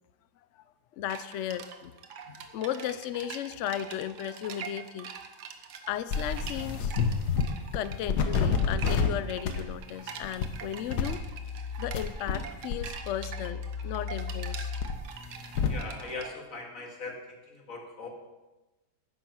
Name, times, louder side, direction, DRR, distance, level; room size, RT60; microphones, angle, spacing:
voice 1, 0.9-1.9 2.3-5.1 5.9-7.0 7.7-11.2 11.8-14.7, left 11 dB, 85° left, 14 dB, 0.6 m, -35 dB
sound 1, 1.1-16.3, right 6 dB, 70° right, 1.5 m, -44 dB
sound 2, 6.1-7.5 7.7-9.1 9.4-9.7 10.2-10.5 10.9-12.4 12.7-15.7, left 6 dB, 70° left, 1.6 m, -30 dB
voice 2, 15.7-18.1, left 3 dB, 50° left, 0 dB, 2.4 m, -40 dB
10.0 x 9.4 x 6.1 m, 1.1 s
omnidirectional pair, 1.9 m